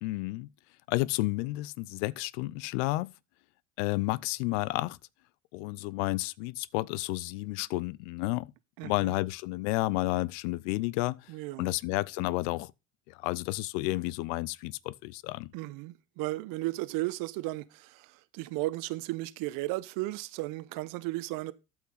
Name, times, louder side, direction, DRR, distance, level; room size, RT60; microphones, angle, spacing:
voice 1, 0.0-0.5 0.9-3.1 3.8-5.0 5.5-8.5 8.8-11.3 11.6-12.7 13.1-15.5, left 20 dB, 70° left, 0.6 m, -31 dB
voice 2, 8.8-9.1 11.3-11.8 15.5-21.5, right 19 dB, 65° right, 0.8 m, -35 dB
12.5 x 5.9 x 4.0 m
hypercardioid pair, 65°, 37 cm